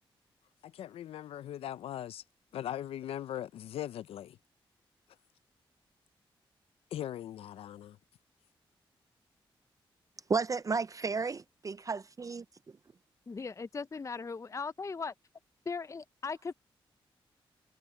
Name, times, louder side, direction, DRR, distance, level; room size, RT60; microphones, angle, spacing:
voice 1, 0.6-2.2 2.5-4.4 6.9-8.0, left 11 dB, 85° left, 0.5 m, -40 dB
voice 2, 10.3-12.4, right 4 dB, 35° right, 0.5 m, -33 dB
voice 3, 13.3-15.1 15.7-16.5, left 4 dB, 35° left, 0.6 m, -38 dB
cardioid pair, 55°, 10 cm